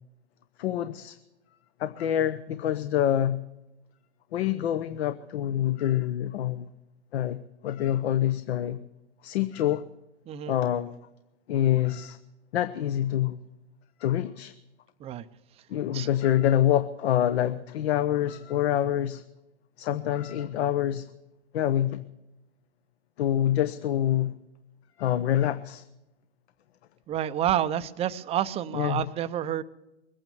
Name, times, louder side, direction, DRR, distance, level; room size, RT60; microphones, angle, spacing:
voice 1, 0.6-1.2 1.8-3.4 4.3-6.7 7.1-7.4 7.6-8.8 9.2-9.8 10.5-11.0 11.5-12.2 12.5-13.4 14.0-14.5 15.7-19.2 19.8-21.0 21.5-22.0 23.2-24.3 25.0-25.8 28.7-29.0, left 11 dB, 60° left, 0.9 m, -26 dB
voice 2, 10.3-10.6 15.0-15.2 15.9-16.1 27.1-29.6, right 11 dB, 15° right, 0.5 m, -29 dB
22.0 x 9.1 x 7.0 m
hypercardioid pair, 125°, 35 cm